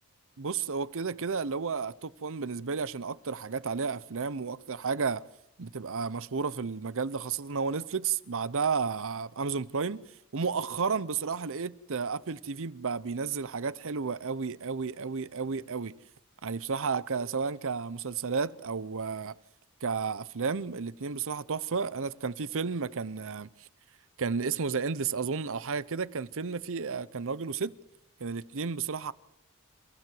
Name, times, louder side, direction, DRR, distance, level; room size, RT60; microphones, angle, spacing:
voice 1, 0.4-5.2 5.6-10.0 10.3-15.9 16.4-19.4 19.8-23.7 24.2-27.7 28.2-29.1, right 5 dB, 65° right, 0.8 m, -32 dB
27.5 x 16.0 x 7.7 m
head